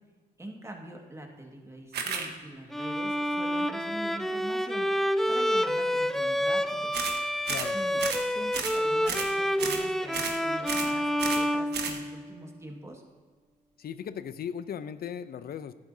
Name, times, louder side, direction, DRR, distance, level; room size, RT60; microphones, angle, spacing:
voice 1, 0.4-6.9 7.7-8.0 8.3-13.0, right 1 dB, 15° right, 2 dB, 1.8 m, -44 dB
sound 1, 1.9-2.3 6.9-7.2 7.5-7.7 8.0-8.3 8.5-8.8 9.1-9.3 9.6-9.9 10.1-10.4 10.7-10.9 11.2-11.5 11.7-12.0, right 6 dB, 70° right, 1.2 m, -32 dB
Bowed string instrument, 2.7-12.4, equal, ahead, 0.4 m, -28 dB
voice 2, 13.8-15.7, left 8 dB, 60° left, 13 dB, 0.6 m, -37 dB
11.5 x 10.5 x 2.7 m, 1.5 s
cardioid pair, 75°, 18 cm